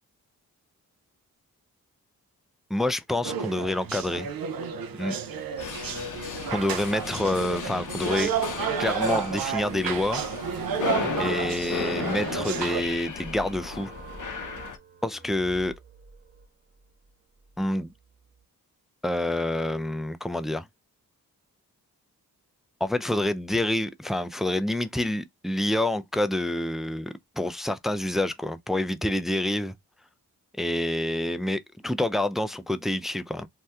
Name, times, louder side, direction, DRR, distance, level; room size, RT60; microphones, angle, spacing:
voice 1, 2.7-4.3 5.0-5.2 6.5-8.3 8.8-10.2 11.2-13.9 15.0-15.7 17.6-17.9 19.0-20.7 22.8-29.7 30.6-33.5, left 1 dB, ahead, 0.3 m, -27 dB
sound 1, 3.2-12.8, right 7 dB, 65° right, 0.6 m, -31 dB
sound 2, 5.6-14.8, left 7 dB, 55° left, 0.8 m, -35 dB
sound 3, 13.2-18.4, right 4 dB, 25° right, 0.9 m, -47 dB
2.7 x 2.2 x 3.3 m
supercardioid pair, 45°, 38 cm